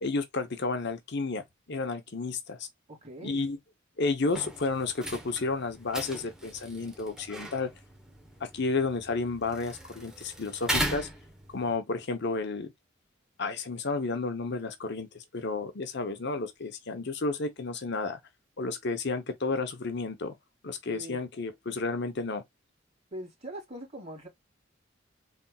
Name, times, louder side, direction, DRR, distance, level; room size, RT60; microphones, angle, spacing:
voice 1, 0.0-2.7 3.2-3.6 4.0-7.7 8.4-11.1 11.5-12.7 13.4-18.2 18.6-20.3 20.6-22.4, left 3 dB, 60° left, 0.9 m, -32 dB
voice 2, 2.9-3.5 20.9-21.2 23.1-24.3, right 1 dB, 35° right, 2.5 m, -42 dB
sound 1, 4.3-11.8, right 1 dB, 5° right, 0.9 m, -38 dB
4.1 x 3.4 x 2.3 m
head